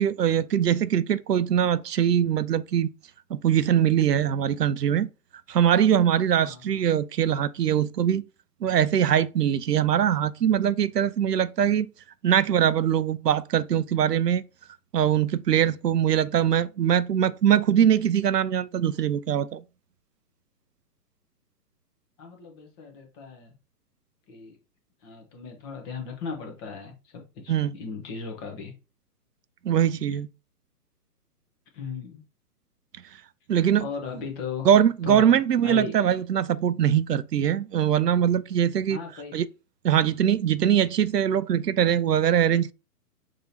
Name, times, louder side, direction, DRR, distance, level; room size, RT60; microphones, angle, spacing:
voice 1, 0.0-2.9 3.3-5.1 5.5-8.2 8.6-11.9 12.2-14.4 14.9-19.6 27.5-27.7 29.6-30.3 33.5-33.9 34.7-39.0 39.3-39.5 39.8-42.7, right 9 dB, 90° right, 0.5 m, -22 dB
voice 2, 6.4-6.9 22.2-23.5 24.3-24.6 25.0-28.7 31.7-32.2 33.8-34.7 35.0-36.0 38.9-39.4, left 5 dB, 15° left, 0.6 m, -37 dB
6.1 x 2.8 x 2.7 m
figure-of-eight pair, 125°, 47 cm